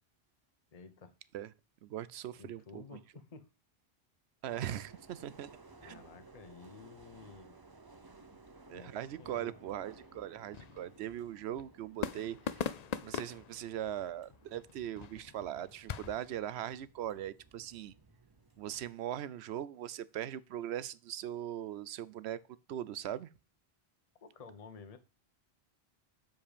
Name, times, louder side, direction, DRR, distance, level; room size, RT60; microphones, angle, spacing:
voice 1, 0.7-1.1 2.4-3.5 5.8-7.5 8.7-9.5 24.2-25.0, left 5 dB, 40° left, 0.9 m, -52 dB
voice 2, 1.8-3.0 4.4-5.5 5.8-6.0 8.7-12.7 13.0-17.9 18.6-22.4 22.7-23.3, right 11 dB, 80° right, 0.8 m, -40 dB
sound 1, 4.5-18.9, right 3 dB, 25° right, 0.8 m, -59 dB
sound 2, 9.1-16.2, left 8 dB, 55° left, 0.5 m, -43 dB
7.5 x 5.2 x 5.0 m
omnidirectional pair, 1.1 m